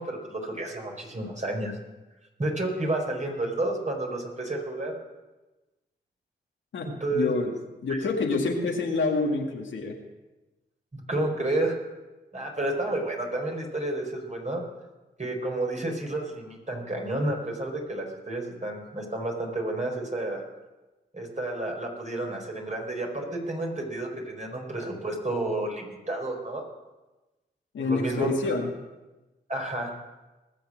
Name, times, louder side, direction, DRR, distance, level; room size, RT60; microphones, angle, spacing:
voice 1, 0.0-1.7 2.4-4.9 6.8-7.3 7.9-8.0 10.9-11.8 12.3-14.6 15.2-20.4 21.1-26.6 27.8-28.6 29.5-29.9, right 2 dB, 40° right, 1 dB, 4.5 m, -30 dB
voice 2, 6.7-7.5 7.8-10.0 27.7-28.7, left 3 dB, 80° left, 2 dB, 1.9 m, -27 dB
20.0 x 7.3 x 6.2 m, 1.1 s
cardioid pair, 45°, 19 cm